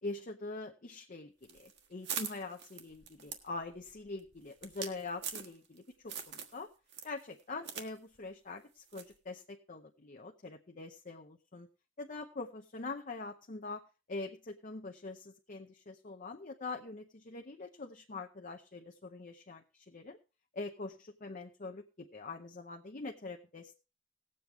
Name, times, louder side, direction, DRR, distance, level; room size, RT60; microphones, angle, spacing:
voice 1, 0.0-6.7 7.0-11.7 12.0-13.8 14.1-20.2 20.5-23.8, left 3 dB, 40° left, 3 dB, 0.8 m, -44 dB
sound 1, 1.4-5.8 6.1-6.6 6.9-7.9 8.1-8.2 8.9-9.2, right 7 dB, 60° right, 1.4 m, -42 dB
18.5 x 7.7 x 3.5 m, 0.30 s
head